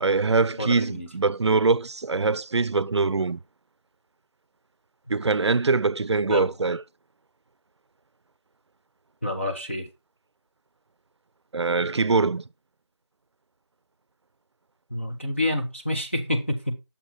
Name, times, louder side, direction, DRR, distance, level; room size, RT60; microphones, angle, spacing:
voice 1, 0.0-3.4 5.1-6.8 11.5-12.4, right 4 dB, 75° right, 0.4 m, -23 dB
voice 2, 0.6-1.1 6.3-6.5 9.2-9.9 14.9-16.8, left 1 dB, 25° left, 0.5 m, -28 dB
7.0 x 3.1 x 5.2 m
figure-of-eight pair, 175°, 15 cm